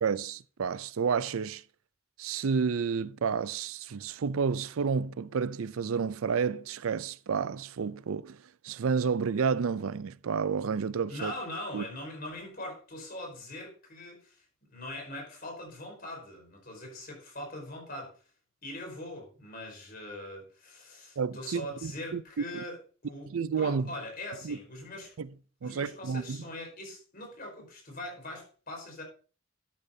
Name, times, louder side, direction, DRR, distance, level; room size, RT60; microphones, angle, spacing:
voice 1, 0.0-1.6 2.2-11.3 11.7-11.8 21.2-22.2 22.5-22.6 23.3-23.9 24.4-24.6 25.2-25.3 25.6-26.4, right 6 dB, 80° right, 0.5 m, -30 dB
voice 2, 11.1-18.2 18.6-23.3 23.6-25.2 25.6-29.0, left 1 dB, 45° left, 4.6 m, -42 dB
12.0 x 10.0 x 2.7 m
head